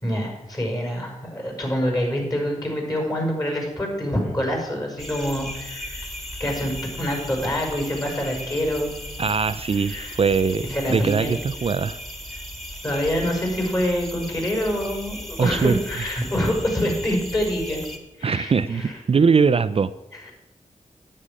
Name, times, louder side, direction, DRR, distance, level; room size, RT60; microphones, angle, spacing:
voice 1, 0.0-6.1 6.4-9.0 9.8-10.2 10.7-11.3 12.8-17.8 18.2-18.9 20.3-20.4, equal, 30° left, 1 dB, 5.3 m, -26 dB
sound 1, 5.0-18.0, equal, ahead, 1.9 m, -36 dB
voice 2, 9.2-12.0 15.4-15.8 18.2-19.9, right 5 dB, 50° right, 13 dB, 0.4 m, -21 dB
9.8 x 8.7 x 6.3 m, 0.96 s
cardioid pair, 70°, 13 cm